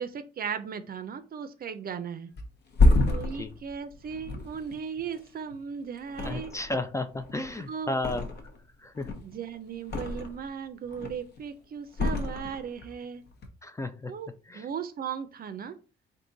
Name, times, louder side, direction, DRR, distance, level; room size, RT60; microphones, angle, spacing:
voice 1, 0.0-2.3 3.0-6.5 7.7-8.0 9.2-13.2 14.1-14.3 14.5-15.8, right 7 dB, 50° right, 10 dB, 0.5 m, -37 dB
Thump thud, 2.4-5.6 6.1-6.9 7.1-8.6 8.9-10.5 10.9-11.4 11.9-12.9 13.3-13.5, left 2 dB, 55° left, 0.9 m, -28 dB
voice 2, 6.2-8.3 8.8-9.1 13.6-14.2 14.5-14.7, left 2 dB, 15° left, 9 dB, 0.4 m, -33 dB
3.7 x 2.7 x 3.9 m, 0.36 s
cardioid pair, 90°, 20 cm